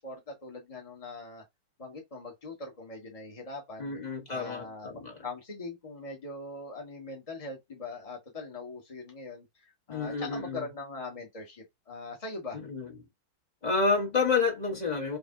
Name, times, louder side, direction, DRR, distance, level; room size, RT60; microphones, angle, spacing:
voice 1, 0.0-1.4 1.8-4.0 4.3-12.6, left 3 dB, 50° left, 0.4 m, -41 dB
voice 2, 3.8-5.2 9.9-10.6 12.5-12.9 13.6-15.2, left 4 dB, 30° left, 0.8 m, -29 dB
4.7 x 2.7 x 3.6 m
omnidirectional pair, 2.4 m